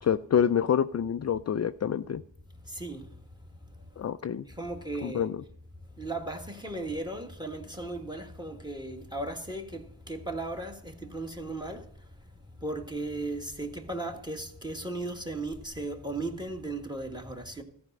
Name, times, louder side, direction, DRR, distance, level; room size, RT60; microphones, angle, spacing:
voice 1, 0.0-2.2 4.0-4.5 5.0-5.4, left 8 dB, 40° left, 0.4 m, -27 dB
voice 2, 2.7-3.0 4.4-5.3 6.0-11.8 12.6-17.6, right 2 dB, 10° right, 1.6 m, -36 dB
14.0 x 5.1 x 6.6 m
cardioid pair, 45°, 45 cm